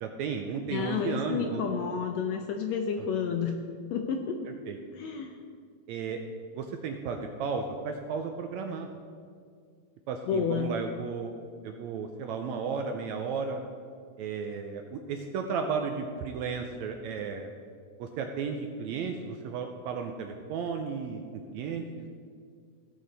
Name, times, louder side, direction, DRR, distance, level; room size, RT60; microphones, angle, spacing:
voice 1, 0.0-1.6 4.4-4.8 5.9-6.2 6.5-8.9 10.1-11.3 11.6-13.6 14.2-17.5 18.0-22.1, right 5 dB, 80° right, 4 dB, 1.7 m, -34 dB
voice 2, 0.7-3.6 3.9-4.4 4.9-5.3 10.3-10.7, left 6 dB, 75° left, 4 dB, 1.6 m, -30 dB
16.0 x 6.4 x 4.0 m, 2.1 s
omnidirectional pair, 3.7 m